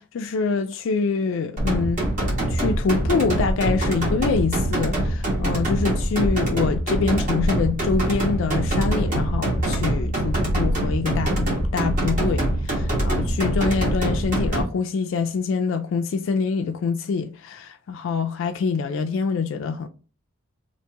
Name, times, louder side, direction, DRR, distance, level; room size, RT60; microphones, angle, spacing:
voice 1, 0.0-2.0 2.5-19.9, left 5 dB, 60° left, 0.3 m, -25 dB
sound 1, 1.6-14.6, right 1 dB, 35° right, 1.3 m, -24 dB
2.9 x 2.6 x 3.4 m
head